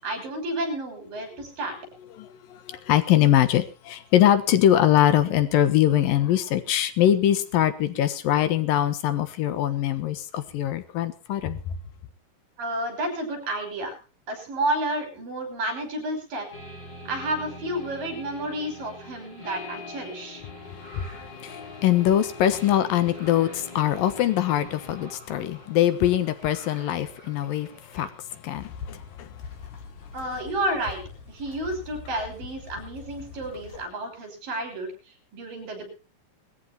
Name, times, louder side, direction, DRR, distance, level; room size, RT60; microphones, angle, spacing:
voice 1, 0.0-1.8 12.6-13.9 14.3-16.5 17.1-20.4 30.1-31.0 31.3-34.9 35.3-35.9, right 1 dB, 80° right, 7.5 m, -31 dB
voice 2, 2.2-11.7 20.7-29.3, left 11 dB, 85° left, 3.1 m, -23 dB
sound 1, 16.5-25.1, left 3 dB, 30° left, 4.0 m, -43 dB
sound 2, 20.0-28.1, right 1 dB, 10° right, 7.0 m, -51 dB
sound 3, 28.5-33.8, left 6 dB, 60° left, 4.4 m, -42 dB
21.5 x 14.5 x 2.9 m
omnidirectional pair, 3.9 m